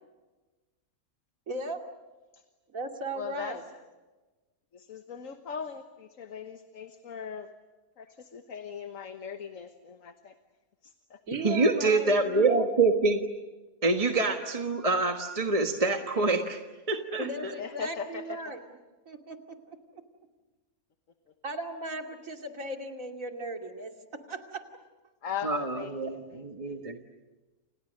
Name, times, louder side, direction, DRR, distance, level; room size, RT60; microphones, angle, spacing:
voice 1, 1.5-1.8 2.7-3.6 11.3-12.6 17.2-18.6 19.1-19.6 19.9-20.0 21.4-23.9 24.3-24.6, right 1 dB, 65° right, 4 dB, 3.0 m, -37 dB
voice 2, 3.1-3.6 4.7-7.5 8.0-10.4 10.8-11.2 17.6-18.5 25.2-26.8, left 6 dB, 65° left, 7 dB, 1.6 m, -39 dB
voice 3, 11.3-13.2 13.8-16.6 16.9-17.5 25.4-26.2 26.6-27.0, right 3 dB, 25° right, 4 dB, 1.4 m, -26 dB
29.5 x 29.0 x 6.6 m, 1.2 s
omnidirectional pair, 1.5 m